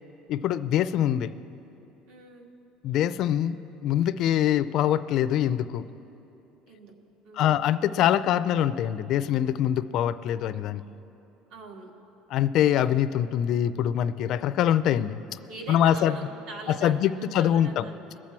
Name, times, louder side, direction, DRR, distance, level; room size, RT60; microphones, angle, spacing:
voice 1, 0.3-1.3 2.8-5.8 7.3-10.8 12.3-15.2 15.7-16.2 16.8-17.9, left 10 dB, 50° left, 13 dB, 0.4 m, -24 dB
voice 2, 2.1-2.5 6.7-6.9 7.2-7.7 11.5-11.9 15.5-18.3, right 3 dB, 70° right, 1 dB, 1.9 m, -43 dB
22.0 x 7.4 x 4.5 m, 2.9 s
cardioid pair, 150°, 0 cm